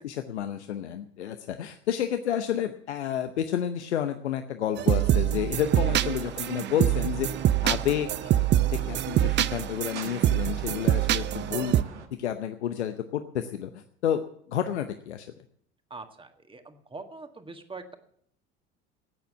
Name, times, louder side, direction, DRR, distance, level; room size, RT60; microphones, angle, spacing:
voice 1, 0.0-7.3 7.6-11.7 12.2-14.2 14.5-15.3, left 10 dB, 80° left, 8 dB, 0.8 m, -30 dB
sound 1, 4.8-11.8, right 12 dB, 35° right, 0.6 m, -25 dB
sound 2, 5.6-12.1, right 6 dB, 85° right, 1.3 m, -45 dB
voice 2, 15.9-17.9, right 3 dB, 15° right, 6 dB, 1.8 m, -43 dB
15.0 x 9.2 x 6.9 m, 0.65 s
figure-of-eight pair, 65°, 34 cm